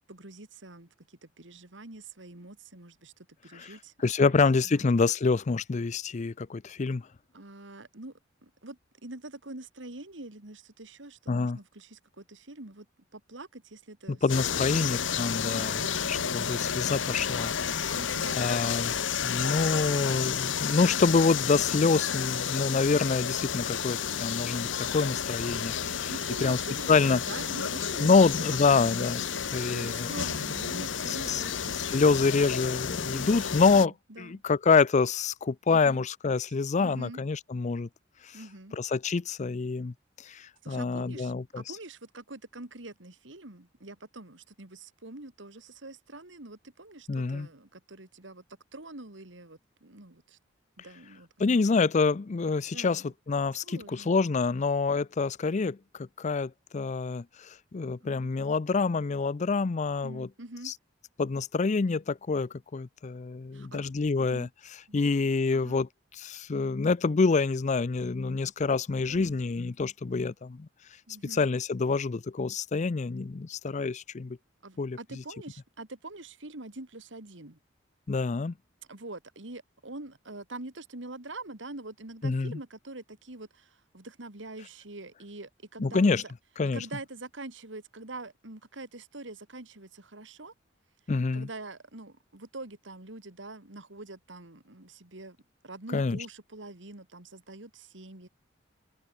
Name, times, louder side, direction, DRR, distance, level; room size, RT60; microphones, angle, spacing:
voice 1, 0.1-4.4 4.6-4.9 7.3-12.9 13.1-15.0 15.5-16.8 17.9-18.5 19.1-20.4 25.8-28.2 28.7-32.1 33.0-34.4 35.7-36.1 36.8-37.2 38.3-38.8 40.3-48.4 48.7-50.4 50.8-51.3 52.7-53.1 53.6-54.2 58.0-58.3 60.0-60.7 63.5-63.9 64.2-64.5 64.9-65.8 69.1-69.4 71.1-71.4 74.6-77.6 78.9-86.3 86.7-90.5 91.3-95.4 95.6-98.3, right 2 dB, 75° right, 2.8 m, -45 dB
voice 2, 4.0-7.0 11.3-11.6 14.2-15.8 16.1-17.5 17.8-17.9 18.4-18.9 19.2-25.7 26.0-26.1 26.4-26.6 26.9-27.2 28.0-29.2 29.5-30.1 30.7-30.8 31.3-31.4 31.9-33.9 34.2-37.9 38.8-39.9 40.3-41.6 47.1-47.5 51.4-53.0 53.3-55.8 56.2-60.3 60.7-60.8 61.2-64.5 64.9-65.9 66.2-70.7 71.4-74.4 74.8-75.0 78.1-78.5 82.2-82.6 85.8-86.2 86.6-86.8 91.1-91.5 95.9-96.2, left 4 dB, 40° left, 0.5 m, -26 dB
sound 1, 14.3-33.9, left 7 dB, 80° left, 1.2 m, -31 dB
open air
head